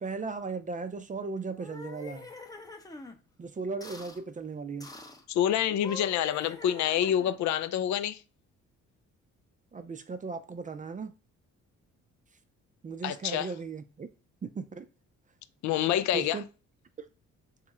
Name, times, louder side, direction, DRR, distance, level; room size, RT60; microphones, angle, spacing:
voice 1, 0.0-2.3 3.4-4.9 9.7-11.1 12.8-14.1 14.4-14.9 16.1-16.4, right 4 dB, 25° right, 0.4 m, -36 dB
sound 1, 1.5-3.2 3.8-4.2 4.8-5.2 5.7-7.4, left 3 dB, 10° left, 0.6 m, -45 dB
voice 2, 5.3-8.2 13.0-13.5 15.6-16.4, left 10 dB, 70° left, 0.5 m, -27 dB
3.2 x 2.9 x 3.6 m
cardioid pair, 90°, 30 cm